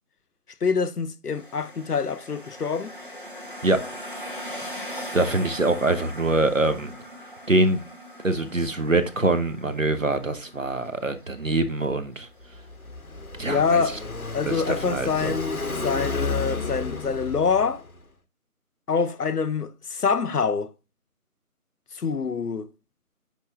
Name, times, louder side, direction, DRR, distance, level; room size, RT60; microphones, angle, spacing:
voice 1, 0.6-2.9 13.5-14.0 14.3-17.8 18.9-20.7 21.9-22.7, left 5 dB, 85° left, 0.8 m, -25 dB
sound 1, 1.3-14.5, equal, 35° right, 1.6 m, -41 dB
voice 2, 5.1-6.9 7.5-7.8 8.2-12.3 13.4-14.0 14.4-15.3, right 2 dB, 60° right, 1.0 m, -24 dB
Car passing by, 12.4-18.0, left 3 dB, 65° left, 1.2 m, -32 dB
10.5 x 3.5 x 3.5 m
figure-of-eight pair, 180°, 45 cm